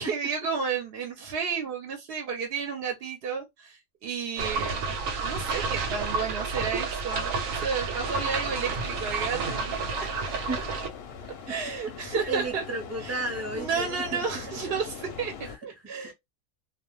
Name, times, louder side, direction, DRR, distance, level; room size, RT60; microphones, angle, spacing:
voice 1, 0.0-4.9 5.2-10.6 11.5-12.6 13.0-13.2 13.5-16.1, right 6 dB, 60° right, 0.7 m, -32 dB
sound 1, 4.4-10.9, right 4 dB, 90° right, 1.0 m, -30 dB
sound 2, 8.0-15.6, left 7 dB, 60° left, 0.7 m, -42 dB
voice 2, 12.3-14.3 15.4-15.6 16.0-16.1, right 2 dB, 15° right, 0.5 m, -33 dB
2.3 x 2.1 x 3.0 m
omnidirectional pair, 1.4 m